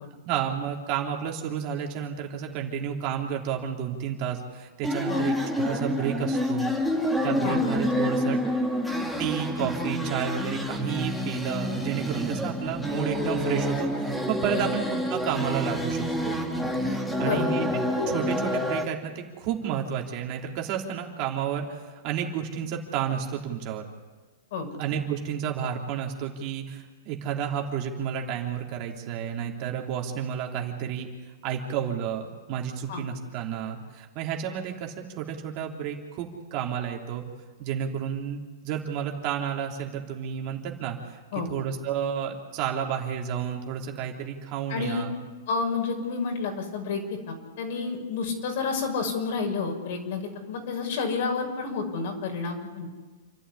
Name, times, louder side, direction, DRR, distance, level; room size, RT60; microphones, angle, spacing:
voice 1, 0.2-6.7 7.2-8.4 9.2-16.4 16.9-17.7 18.1-23.8 24.8-31.1 31.4-37.2 37.6-41.2 41.5-45.1, right 8 dB, 40° right, 1 dB, 3.3 m, -31 dB
sound 1, 4.8-18.8, equal, ahead, 2.3 m, -28 dB
voice 2, 17.2-17.5 24.5-24.7 32.9-33.0 41.3-41.5 44.7-45.0 45.5-52.9, left 4 dB, 60° left, 3 dB, 5.9 m, -30 dB
28.5 x 11.5 x 9.9 m, 1.4 s
hypercardioid pair, 145°, 0 cm